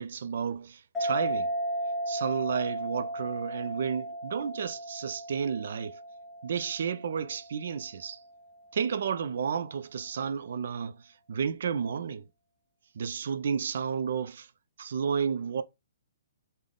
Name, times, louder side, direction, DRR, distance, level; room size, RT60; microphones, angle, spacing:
voice 1, 0.0-1.5 2.1-6.0 6.4-8.2 8.7-11.0 11.3-12.2 13.0-14.5 14.8-15.6, right 6 dB, 65° right, 0.3 m, -32 dB
sound 1, 0.9-8.0, right 1 dB, 5° left, 0.6 m, -35 dB
3.7 x 2.1 x 3.4 m
hypercardioid pair, 160°, 0 cm